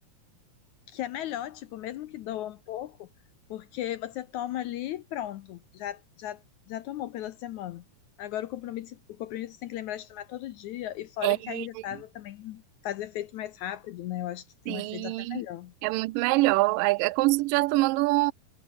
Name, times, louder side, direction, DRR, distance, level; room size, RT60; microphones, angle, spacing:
voice 1, 0.9-3.1 3.5-6.4 6.7-7.8 8.2-15.7, left 12 dB, 70° left, 1.9 m, -36 dB
voice 2, 11.2-11.7 14.7-15.4 15.8-18.3, right 21 dB, 85° right, 2.2 m, -25 dB
omnidirectional pair, 4.0 m